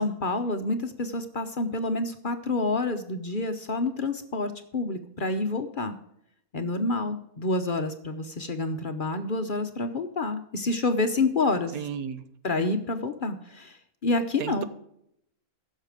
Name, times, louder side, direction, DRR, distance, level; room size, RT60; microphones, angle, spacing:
voice 1, 0.0-5.9 6.5-11.8 12.4-13.8 14.0-14.6, left 2 dB, 45° left, 8 dB, 0.8 m, -28 dB
voice 2, 11.7-12.2 14.4-14.6, right 8 dB, 85° right, 12 dB, 1.3 m, -33 dB
15.5 x 6.5 x 4.9 m, 0.76 s
omnidirectional pair, 1.5 m